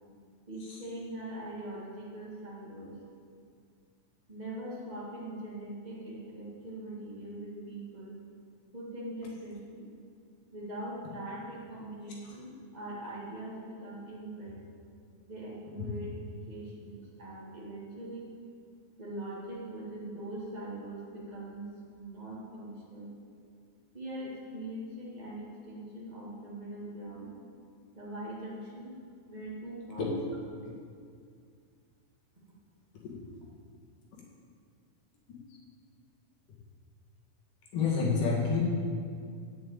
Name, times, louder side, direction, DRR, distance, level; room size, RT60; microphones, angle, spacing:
voice 1, 0.5-3.0 4.3-8.2 8.7-9.9 10.5-14.6 15.3-18.3 19.0-21.7 22.0-23.1 23.9-27.3 27.9-28.9 29.3-30.1, right 1 dB, 30° right, -5 dB, 0.7 m, -42 dB
voice 2, 37.7-38.6, left 5 dB, 65° left, -4 dB, 3.3 m, -28 dB
7.9 x 7.7 x 8.7 m, 2.3 s
omnidirectional pair, 4.3 m